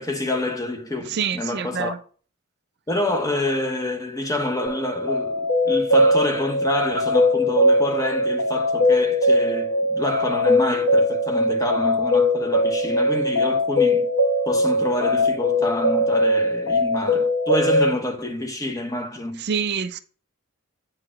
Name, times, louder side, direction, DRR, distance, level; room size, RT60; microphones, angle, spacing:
voice 1, 0.0-1.9 2.9-14.1 14.5-19.4, left 1 dB, 15° left, 0.9 m, -27 dB
voice 2, 1.1-2.0 19.4-20.0, right 6 dB, 50° right, 0.4 m, -26 dB
sound 1, 4.7-17.9, left 1 dB, 75° left, 1.2 m, -20 dB
8.6 x 4.6 x 3.7 m
head